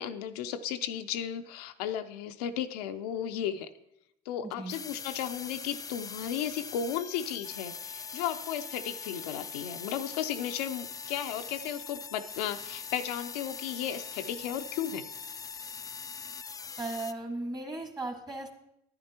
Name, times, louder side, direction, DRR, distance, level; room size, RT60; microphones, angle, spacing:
voice 1, 0.0-3.7 4.3-15.1, left 9 dB, 85° left, 8 dB, 0.5 m, -34 dB
voice 2, 4.4-4.7 16.8-18.5, right 2 dB, 20° right, 5 dB, 1.6 m, -36 dB
sound 1, 4.7-17.1, left 5 dB, 20° left, 0.3 m, -42 dB
10.5 x 9.9 x 2.9 m, 0.82 s
hypercardioid pair, 70°, 19 cm